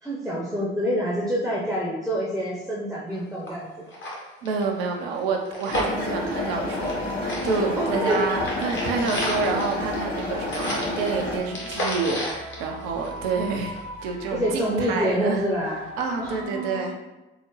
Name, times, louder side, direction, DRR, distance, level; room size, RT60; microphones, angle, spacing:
voice 1, 0.0-3.7 7.8-8.2 14.3-15.9 16.2-16.9, equal, ahead, -4 dB, 0.7 m, -27 dB
sound 1, 3.1-3.2 3.5-3.6 3.9-7.0 7.3-13.4 13.8-13.9, equal, 40° left, 1.1 m, -32 dB
voice 2, 4.4-15.4 16.0-16.9, right 4 dB, 70° right, 2 dB, 0.5 m, -28 dB
sound 2, 5.7-11.4, left 1 dB, 75° left, 1.3 m, -29 dB
sound 3, 6.7-16.4, left 1 dB, 90° left, 0.9 m, -40 dB
3.6 x 2.1 x 3.1 m, 1.1 s
figure-of-eight pair, 45°, 30 cm